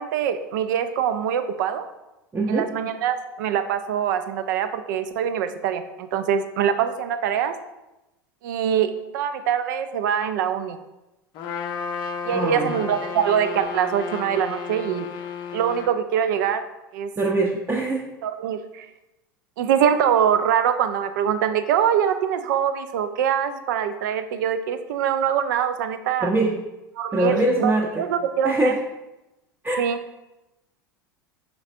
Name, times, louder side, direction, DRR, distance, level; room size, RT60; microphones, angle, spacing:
voice 1, 0.0-1.8 2.5-7.5 8.4-10.8 12.2-15.1 15.5-16.6 16.9-17.1 18.2-18.9 19.6-26.3 27.0-27.7 28.0-28.7 29.8-30.0, right 8 dB, 60° right, 10 dB, 0.4 m, -23 dB
voice 2, 2.3-2.7 12.3-12.8 17.2-18.1 26.2-26.5 27.1-28.1 28.4-28.8 29.6-29.8, right 2 dB, 15° right, -3 dB, 0.6 m, -22 dB
Trumpet, 11.3-15.9, left 6 dB, 40° left, 0.5 m, -33 dB
4.4 x 4.0 x 2.5 m, 0.98 s
figure-of-eight pair, 85°, 12 cm